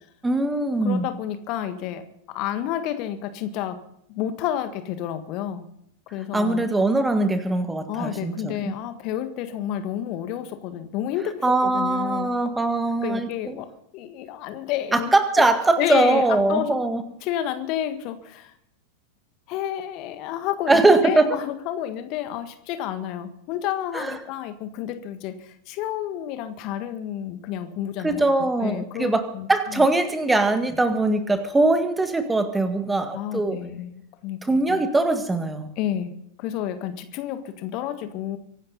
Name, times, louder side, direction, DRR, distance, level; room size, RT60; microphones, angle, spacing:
voice 1, 0.2-1.1 6.3-8.7 11.4-13.5 14.9-17.0 20.7-21.3 23.9-24.2 28.0-33.6 34.4-35.7, right 2 dB, 10° right, 9 dB, 1.9 m, -21 dB
voice 2, 0.8-3.8 4.1-5.7 6.1-6.6 7.9-12.3 13.0-13.7 13.9-15.1 15.4-15.5 15.8-16.7 17.2-18.5 19.5-29.9 33.1-34.8 35.8-36.1 36.4-38.4, left 11 dB, 40° left, 10 dB, 1.6 m, -30 dB
24.0 x 11.5 x 4.1 m, 0.73 s
figure-of-eight pair, 90°, 0 cm